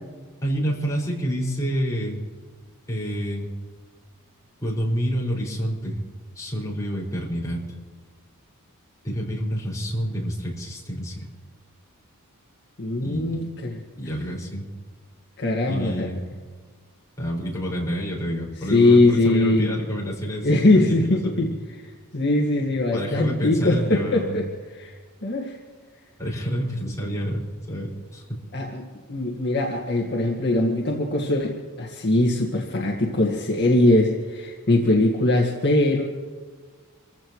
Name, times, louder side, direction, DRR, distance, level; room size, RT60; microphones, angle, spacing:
voice 1, 0.4-2.2 2.9-3.5 4.6-6.0 6.4-7.6 9.0-11.3 13.0-13.4 14.0-14.6 15.7-16.2 17.2-21.4 22.9-24.4 26.2-27.4 27.7-28.4, equal, 15° left, -5 dB, 5.5 m, -28 dB
voice 2, 12.8-13.8 15.4-16.1 18.7-19.7 20.4-21.5 22.1-24.5 24.7-24.9 25.2-25.6 28.5-31.5 31.8-36.0, left 2 dB, 50° left, -1 dB, 1.8 m, -21 dB
27.5 x 15.5 x 3.1 m, 1.5 s
head